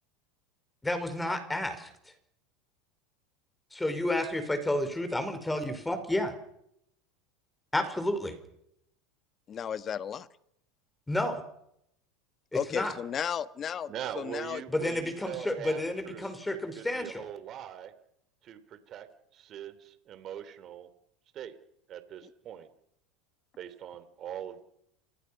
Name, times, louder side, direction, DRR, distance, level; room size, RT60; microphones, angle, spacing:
voice 1, 0.8-1.9 3.7-6.3 7.7-8.4 11.1-11.4 12.5-12.9 14.7-17.3, left 1 dB, 10° left, 8 dB, 5.0 m, -31 dB
voice 2, 9.5-10.3 12.5-14.6, left 8 dB, 35° left, 13 dB, 1.4 m, -34 dB
voice 3, 13.9-17.9 18.4-19.1 19.3-20.9 21.3-21.6 21.9-22.7 23.6-24.6, right 10 dB, 40° right, 12 dB, 3.3 m, -42 dB
29.0 x 24.5 x 5.9 m, 0.75 s
supercardioid pair, 115°, 0 cm